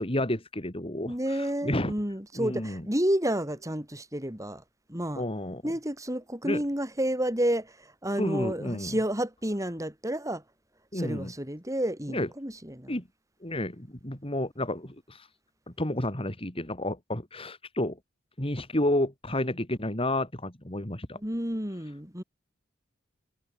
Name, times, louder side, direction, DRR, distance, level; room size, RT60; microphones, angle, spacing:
voice 1, 0.0-1.9 2.4-2.8 5.2-5.6 6.4-6.6 8.2-8.9 10.9-11.3 12.1-12.3 12.9-13.0 13.4-15.3 15.8-18.0 18.4-21.2, left 1 dB, 30° left, 4.1 m, -31 dB
voice 2, 1.1-4.6 4.9-5.2 5.6-10.4 10.9-13.0 21.1-22.2, right 1 dB, 15° right, 7.9 m, -30 dB
head